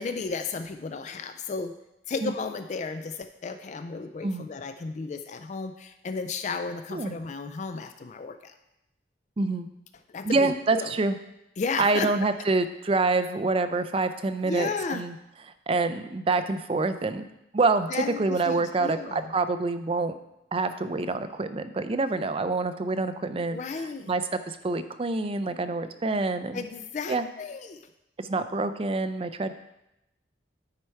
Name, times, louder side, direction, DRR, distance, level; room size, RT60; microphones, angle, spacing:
voice 1, 0.0-1.7 2.1-8.6 10.1-10.9 11.6-12.1 14.4-15.1 17.9-19.3 23.5-24.1 26.5-27.9, left 4 dB, 40° left, 9 dB, 0.3 m, -34 dB
voice 2, 9.4-9.7 10.2-11.2 11.8-15.1 15.7-17.3 17.5-20.2 20.5-23.6 24.1-26.6 27.1-27.2 28.2-29.5, right 3 dB, 30° right, 10 dB, 0.4 m, -26 dB
9.6 x 4.4 x 4.5 m, 0.87 s
head